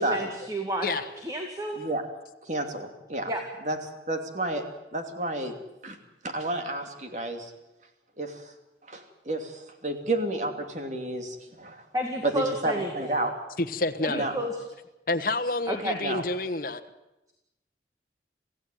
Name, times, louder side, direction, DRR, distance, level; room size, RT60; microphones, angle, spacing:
voice 1, 0.0-1.0 1.2-1.8 3.3-3.4 11.9-13.1 14.0-14.5 15.7-16.0, right 1 dB, 20° right, 3 dB, 2.2 m, -31 dB
voice 2, 2.4-3.3 3.6-3.8 4.1-4.6 4.9-5.5 5.8-6.0 6.2-7.5 8.2-8.5 8.9-11.8 12.2-13.3 14.1-14.3 16.0-16.2, right 2 dB, 40° right, 5 dB, 2.8 m, -30 dB
voice 3, 13.6-14.3 15.1-16.8, left 2 dB, 50° left, 7 dB, 1.3 m, -28 dB
27.0 x 15.5 x 9.3 m, 0.96 s
head